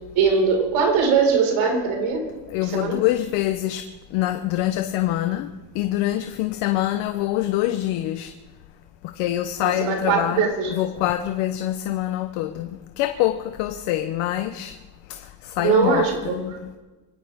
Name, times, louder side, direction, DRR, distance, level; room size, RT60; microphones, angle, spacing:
voice 1, 0.2-2.2 2.6-3.0 9.6-10.8 15.6-16.4, right 5 dB, 75° right, 1 dB, 5.1 m, -21 dB
voice 2, 2.5-3.9 4.1-5.5 5.7-8.3 9.0-12.7 13.0-14.7 15.1-16.5, left 14 dB, 85° left, 8 dB, 1.0 m, -25 dB
24.0 x 17.0 x 3.6 m, 1.2 s
cardioid pair, 105°, 49 cm